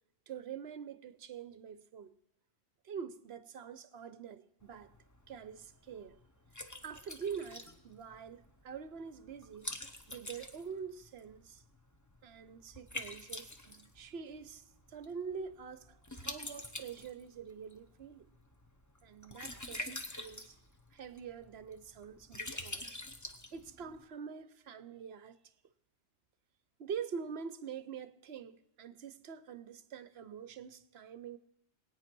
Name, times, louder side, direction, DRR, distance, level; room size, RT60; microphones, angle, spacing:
voice 1, 0.3-2.1 2.8-4.9 5.3-6.2 6.8-9.7 10.1-11.6 12.2-18.3 19.0-20.6 20.9-23.0 23.5-25.5 26.8-31.4, right 6 dB, 60° right, 0.9 m, -45 dB
Liquid, 4.6-24.0, left 1 dB, 15° left, 0.9 m, -47 dB
20.0 x 9.0 x 6.0 m
omnidirectional pair, 1.3 m